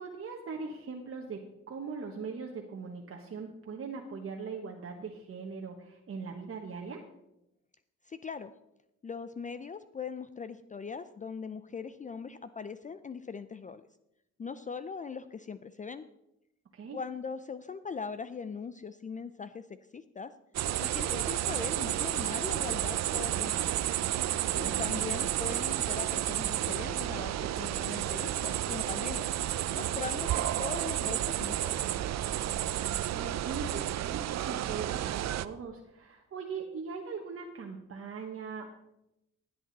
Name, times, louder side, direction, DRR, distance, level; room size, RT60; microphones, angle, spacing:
voice 1, 0.0-7.0 16.7-17.0 24.5-24.9 32.9-38.7, right 5 dB, 45° right, 1 dB, 1.4 m, -40 dB
voice 2, 8.0-8.5 9.0-13.9 14.4-16.1 16.9-20.3 20.8-23.7 24.5-29.3 29.7-32.1, left 5 dB, 25° left, 12 dB, 0.5 m, -40 dB
sound 1, 20.5-35.4, right 12 dB, 60° right, 0.6 m, -31 dB
15.5 x 8.5 x 4.1 m, 0.87 s
cardioid pair, 90°, 30 cm